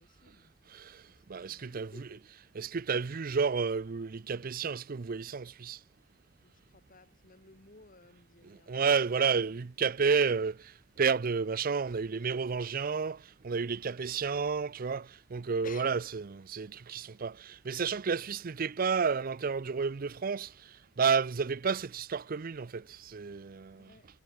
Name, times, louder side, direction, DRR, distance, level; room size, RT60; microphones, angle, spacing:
voice 1, 0.0-0.6 1.1-2.3 6.4-10.3 15.6-16.0 18.2-18.4 23.8-24.1, left 3 dB, 45° left, 3.4 m, -56 dB
voice 2, 1.3-1.9 2.6-5.8 8.7-10.6 11.0-13.2 13.4-16.0 16.4-20.5 21.0-23.8, right 5 dB, 50° right, 0.5 m, -31 dB
head